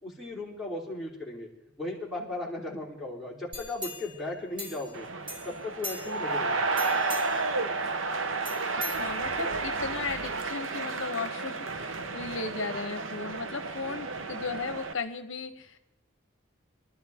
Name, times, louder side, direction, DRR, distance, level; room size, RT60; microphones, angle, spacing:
voice 1, 0.0-1.5 1.8-5.1 5.4-6.7, left 2 dB, ahead, -5 dB, 3.4 m, -36 dB
sound 1, 3.5-5.0 5.3-6.3 6.7-7.5 8.4-9.6 10.0-10.1, left 1 dB, 25° right, 2.7 m, -41 dB
sound 2, 4.9-14.9, right 3 dB, 65° right, 0.9 m, -32 dB
voice 2, 8.9-15.8, left 4 dB, 65° left, 9 dB, 0.9 m, -36 dB
24.0 x 12.5 x 3.6 m, 0.83 s
head